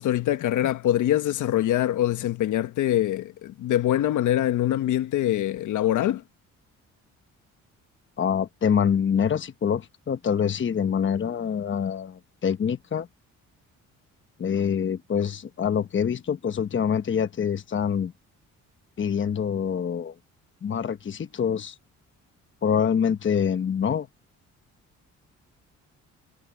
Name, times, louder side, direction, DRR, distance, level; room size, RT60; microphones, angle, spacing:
voice 1, 0.0-6.2, left 12 dB, 80° left, 1.4 m, -24 dB
voice 2, 8.2-13.1 14.4-18.1 19.0-20.1 20.6-21.7 22.6-24.1, left 7 dB, 40° left, 1.2 m, -25 dB
cardioid pair, 90°, 30 cm